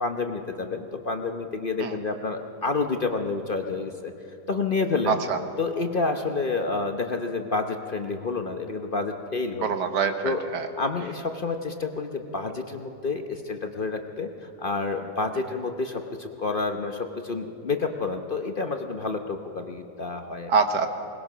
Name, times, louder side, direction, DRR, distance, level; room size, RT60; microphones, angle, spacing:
voice 1, 0.0-4.1 4.5-5.2 5.6-9.8 10.2-10.4 10.8-20.5, left 3 dB, 40° left, 5 dB, 0.9 m, -29 dB
voice 2, 5.1-5.4 9.6-10.7 20.5-20.9, right 5 dB, 85° right, 7 dB, 1.9 m, -25 dB
21.5 x 20.0 x 6.1 m, 3.0 s
omnidirectional pair, 1.8 m